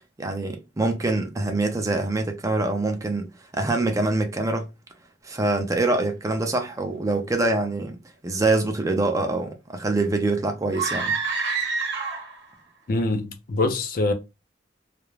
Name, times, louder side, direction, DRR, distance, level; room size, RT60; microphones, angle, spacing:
voice 1, 0.2-3.3 3.5-4.7 5.2-11.1, right 2 dB, 20° right, 0.4 m, -25 dB
sound 1, 10.7-12.5, right 4 dB, 70° right, 0.8 m, -27 dB
voice 2, 12.9-14.1, left 2 dB, 50° left, 0.5 m, -24 dB
2.4 x 2.1 x 3.0 m
head